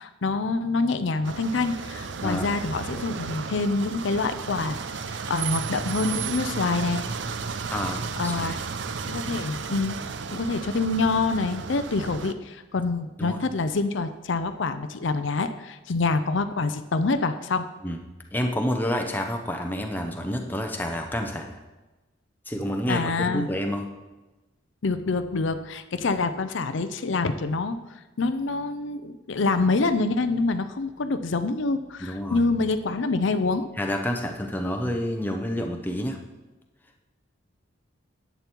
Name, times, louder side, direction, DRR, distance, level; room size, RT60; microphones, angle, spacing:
voice 1, 0.0-7.0 8.2-8.5 9.1-17.7 22.9-23.5 24.8-27.8 28.2-33.7, left 3 dB, 70° left, 10 dB, 0.6 m, -26 dB
sound 1, 1.2-12.3, right 5 dB, 60° right, 0.5 m, -33 dB
voice 2, 7.7-8.6 13.2-13.4 17.8-18.0 18.3-21.6 22.5-23.9 32.0-32.4 33.8-36.2, equal, 10° left, 3 dB, 0.8 m, -29 dB
10.5 x 8.4 x 4.6 m, 1.1 s
head